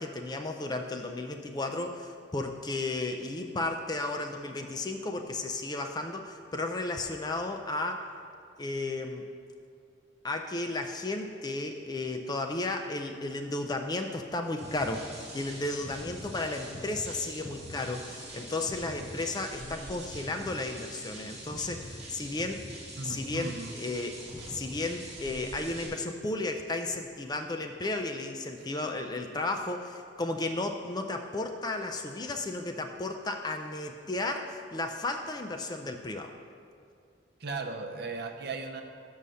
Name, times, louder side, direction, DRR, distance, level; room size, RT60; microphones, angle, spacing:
voice 1, 0.0-8.1 8.6-9.2 10.2-15.0 15.3-22.6 23.0-24.2 24.5-36.3, left 2 dB, 20° left, 5 dB, 0.4 m, -34 dB
sound 1, 14.6-25.9, right 1 dB, 30° right, 1.9 m, -43 dB
voice 2, 23.0-23.7 37.4-38.8, right 3 dB, 55° right, 4 dB, 0.6 m, -36 dB
6.7 x 5.5 x 6.2 m, 2.3 s
head